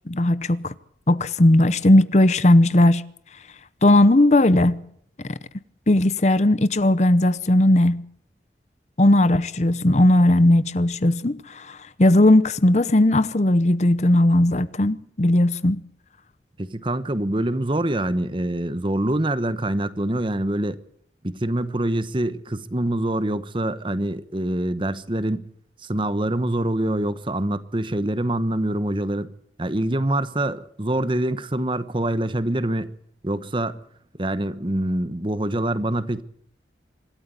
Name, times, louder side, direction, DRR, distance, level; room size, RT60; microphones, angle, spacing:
voice 1, 0.1-0.7 1.1-3.0 3.8-4.8 5.2-5.3 5.9-8.0 9.0-15.8, left 1 dB, 40° left, 0.8 m, -17 dB
voice 2, 16.6-20.8 21.2-25.5 25.8-29.3 29.6-32.9 33.2-33.8 34.2-36.2, right 1 dB, 30° right, 1.1 m, -25 dB
25.5 x 13.5 x 8.3 m
head